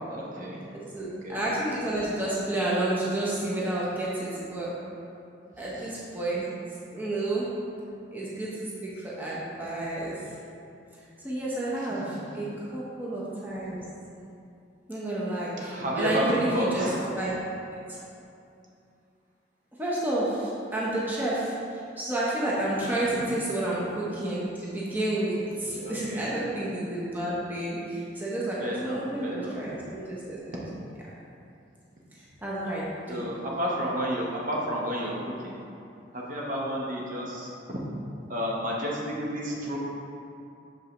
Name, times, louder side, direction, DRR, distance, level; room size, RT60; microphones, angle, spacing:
voice 1, 0.1-0.7 1.2-1.4 5.7-5.9 15.6-17.0 23.0-23.3 25.8-26.3 28.6-29.5 30.5-30.6 33.1-35.6 36.1-37.5 38.3-39.8, equal, 45° right, -4 dB, 0.8 m, -31 dB
voice 2, 0.9-4.7 5.6-6.4 6.9-7.5 8.1-10.1 11.2-13.8 14.9-16.8 17.1-17.3 17.9-18.0 19.8-30.4 32.4-33.3, right 1 dB, 10° right, -7 dB, 0.8 m, -30 dB
6.5 x 5.4 x 3.0 m, 2.6 s
head